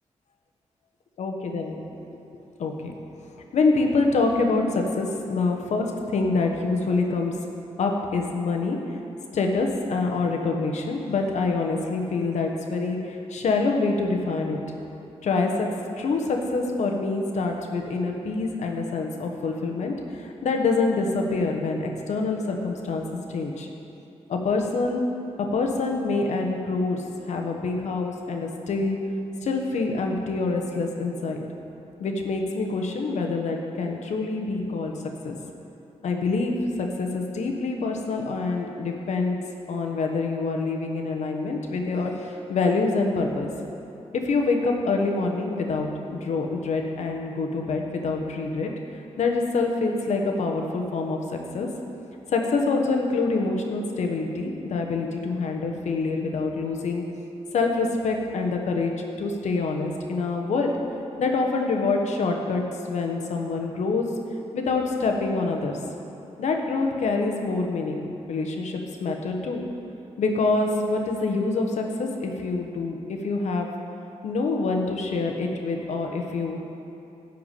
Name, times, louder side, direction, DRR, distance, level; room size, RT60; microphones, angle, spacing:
voice 1, 1.2-1.8 2.6-3.0 3.5-7.3 7.8-9.0 9.3-14.6 15.2-15.7 16.0-23.7 24.3-25.0 25.4-29.0 29.4-31.4 32.0-34.9 35.2-35.3 36.0-39.4 39.7-43.5 44.1-48.7 49.2-51.7 52.3-57.0 57.5-58.9 59.2-60.7 61.2-62.6 62.9-64.1 64.5-65.8 66.4-69.6 70.2-73.7 74.2-76.6, left 3 dB, 85° left, 2 dB, 1.2 m, -26 dB
12.5 x 4.7 x 8.2 m, 2.8 s
cardioid pair, 90°, 12 cm